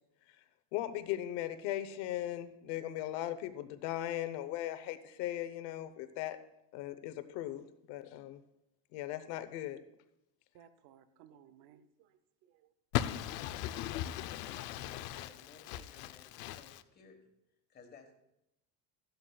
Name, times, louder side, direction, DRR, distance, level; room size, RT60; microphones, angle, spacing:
voice 1, 0.7-6.4 6.7-8.4 8.9-9.8, left 13 dB, 85° left, 1.0 m, -38 dB
voice 2, 10.5-12.7, right 9 dB, 70° right, 0.8 m, -61 dB
voice 3, 12.9-15.4 15.6-16.8, left 12 dB, 65° left, 0.7 m, -38 dB
voice 4, 14.2-17.2 17.7-18.1, left 4 dB, 25° left, 1.4 m, -58 dB
15.5 x 11.5 x 2.4 m
cardioid pair, 165°, 40 cm